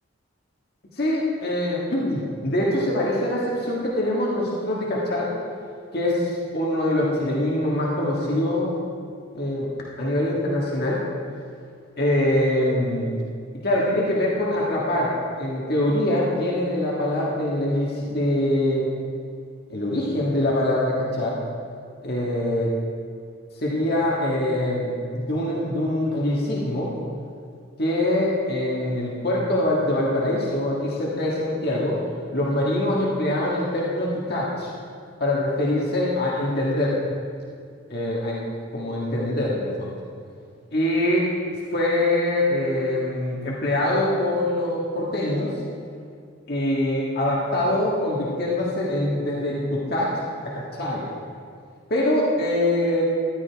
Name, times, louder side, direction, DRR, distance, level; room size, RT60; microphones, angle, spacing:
voice 1, 0.9-5.3 5.9-8.7 9.3-9.7 10.0-11.0 12.0-13.1 13.6-18.8 19.7-21.4 22.0-22.7 23.6-26.9 27.8-32.0 32.3-34.7 35.2-37.0 37.9-38.4 38.7-39.9 40.7-41.3 41.7-45.6 46.5-51.1 51.9-53.0, left 1 dB, 50° left, -4 dB, 1.7 m, -24 dB
14.0 x 11.5 x 3.5 m, 2.3 s
head